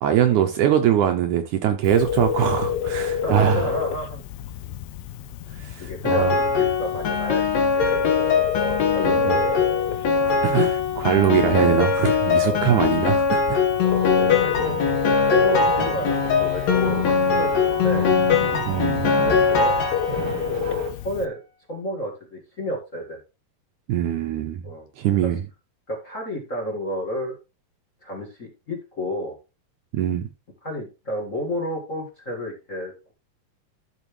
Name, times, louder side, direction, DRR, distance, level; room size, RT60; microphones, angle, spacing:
voice 1, 0.0-3.7 5.5-6.4 9.0-9.4 10.3-13.6 18.6-19.1 23.9-24.6 25.0-25.4 29.9-30.2, right 10 dB, 75° right, 1.9 m, -22 dB
Telephone, 1.8-21.3, left 8 dB, 90° left, 2.6 m, -31 dB
voice 2, 3.2-4.2 5.8-7.4 7.7-8.0 8.5-9.6 10.0-10.4 12.4-12.7 13.8-14.8 15.2-18.1 19.2-19.8 20.5-21.4 21.7-23.2 24.6-24.9 25.9-27.4 28.0-29.3 30.6-33.1, equal, 30° left, 1.6 m, -31 dB
Piano, 6.1-20.4, left 5 dB, 55° left, 2.5 m, -21 dB
sound 1, 13.7-20.9, right 7 dB, 55° right, 1.8 m, -34 dB
12.5 x 6.0 x 3.2 m
omnidirectional pair, 4.0 m